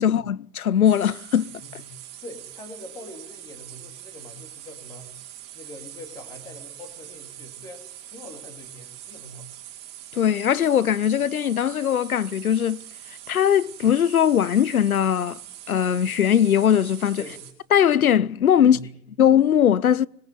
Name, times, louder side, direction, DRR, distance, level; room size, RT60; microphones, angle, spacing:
voice 1, 0.0-1.5 10.1-12.8 13.3-15.4 15.7-17.2 17.7-18.8 19.2-20.1, left 9 dB, 60° left, 1.0 m, -20 dB
sound 1, 0.8-17.5, right 12 dB, 10° right, 3.2 m, -43 dB
voice 2, 1.4-5.2 5.5-9.5 17.2-17.4 18.6-19.0, left 1 dB, 5° left, 2.4 m, -43 dB
26.0 x 21.0 x 9.7 m
hypercardioid pair, 170°, 49 cm